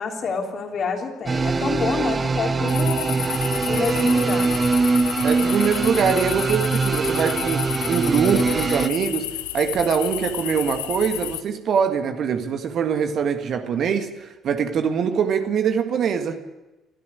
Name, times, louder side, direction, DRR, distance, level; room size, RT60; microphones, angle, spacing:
voice 1, 0.0-3.1 3.7-4.5, left 5 dB, 45° left, 2 dB, 3.3 m, -28 dB
sound 1, 1.3-8.9, right 4 dB, 30° right, 0.7 m, -22 dB
sound 2, 2.7-11.4, left 15 dB, 75° left, 0.8 m, -31 dB
voice 2, 5.2-9.3 9.5-16.4, right 7 dB, 50° right, 7 dB, 1.8 m, -23 dB
20.0 x 13.5 x 9.6 m, 1.1 s
figure-of-eight pair, 50°, 0 cm